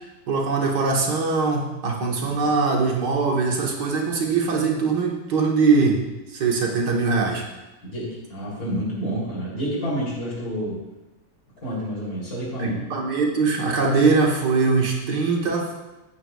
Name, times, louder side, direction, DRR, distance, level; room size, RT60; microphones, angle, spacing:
voice 1, 0.3-6.0 6.3-7.4 12.6-15.7, right 4 dB, 90° right, -1 dB, 2.1 m, -22 dB
voice 2, 2.2-2.5 7.8-10.8 11.6-12.8, equal, 60° left, -5 dB, 3.9 m, -29 dB
13.0 x 9.4 x 2.4 m, 1.1 s
omnidirectional pair, 1.8 m